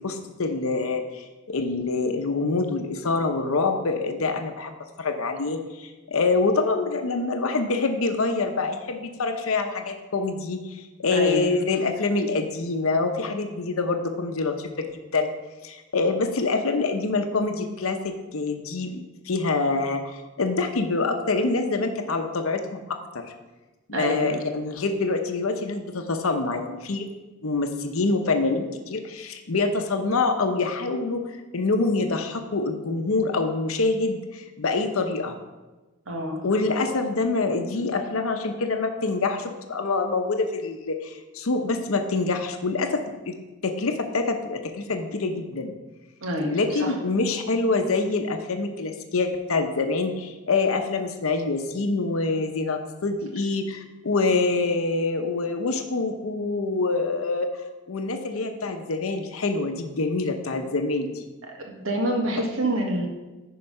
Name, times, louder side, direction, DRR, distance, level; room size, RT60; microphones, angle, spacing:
voice 1, 0.0-15.3 15.6-23.3 23.9-27.1 27.4-35.4 36.4-43.4 43.6-45.7 46.5-61.2, left 3 dB, 75° left, 6 dB, 0.8 m, -26 dB
voice 2, 11.1-11.5 23.9-24.3 36.1-36.4 46.2-46.9 61.6-63.1, right 1 dB, 65° right, 1 dB, 1.6 m, -27 dB
10.0 x 4.7 x 5.4 m, 1.2 s
head